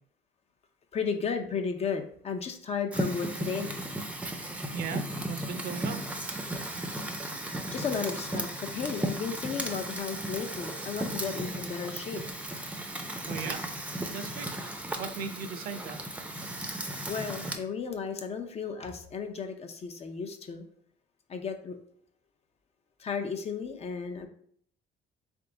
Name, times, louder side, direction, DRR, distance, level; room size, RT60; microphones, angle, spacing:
voice 1, 0.9-3.8 7.7-12.2 17.1-20.6 21.3-21.8 23.0-24.3, left 6 dB, 40° left, 6 dB, 0.6 m, -34 dB
Fire, 2.9-17.6, right 1 dB, 10° right, 0.5 m, -35 dB
voice 2, 4.7-6.0 13.3-13.6 14.1-14.5 15.0-16.0, right 6 dB, 60° right, 9 dB, 0.6 m, -37 dB
3.5 x 3.4 x 3.9 m, 0.62 s
cardioid pair, 110°, 17 cm